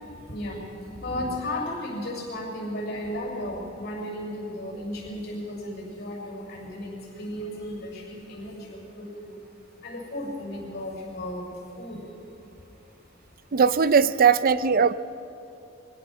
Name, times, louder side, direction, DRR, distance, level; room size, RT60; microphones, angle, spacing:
voice 1, 0.3-0.6 0.9-9.4 9.8-11.5 11.8-12.0, left 1 dB, 55° left, -1 dB, 6.6 m, -34 dB
voice 2, 13.5-14.9, right 6 dB, 50° right, 14 dB, 0.5 m, -19 dB
24.5 x 17.0 x 6.3 m, 3.0 s
head